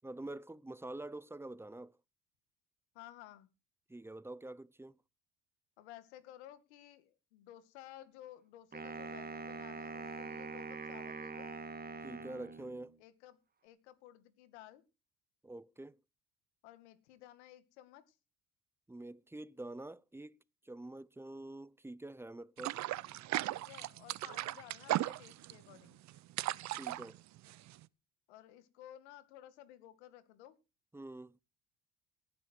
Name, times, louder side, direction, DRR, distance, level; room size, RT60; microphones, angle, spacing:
voice 1, 0.0-2.0 3.9-5.0 12.0-12.9 15.4-16.0 18.9-20.4 20.6-22.8 26.7-27.2 30.9-31.4, right 2 dB, 5° right, 0.7 m, -46 dB
voice 2, 2.9-3.5 5.8-11.5 13.0-14.8 16.6-18.2 23.4-26.0 28.3-30.6, left 13 dB, 85° left, 2.3 m, -55 dB
Wind instrument woodwind instrument, 8.7-13.0, right 3 dB, 30° right, 2.0 m, -44 dB
sound 1, 22.6-27.8, right 15 dB, 55° right, 0.9 m, -37 dB
18.0 x 10.0 x 4.7 m
supercardioid pair, 75°, 33 cm